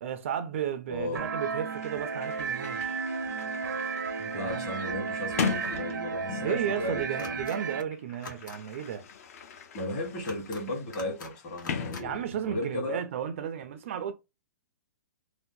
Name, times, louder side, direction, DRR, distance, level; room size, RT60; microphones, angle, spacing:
voice 1, 0.0-3.0 4.2-4.6 6.4-9.0 12.0-14.1, right 9 dB, 40° right, 0.3 m, -34 dB
voice 2, 0.9-1.3 4.3-7.4 9.7-13.0, left 1 dB, 25° left, 1.2 m, -35 dB
sound 1, 1.1-7.8, right 5 dB, 90° right, 0.6 m, -33 dB
Sliding door, 1.4-1.5 1.7-6.8 7.7-12.7, left 6 dB, 50° left, 0.5 m, -39 dB
sound 2, 7.2-7.6 8.1-8.6 10.2-10.6 10.9-11.3 11.6-12.0, left 3 dB, 70° left, 1.2 m, -44 dB
2.7 x 2.1 x 3.5 m
hypercardioid pair, 160°, 10 cm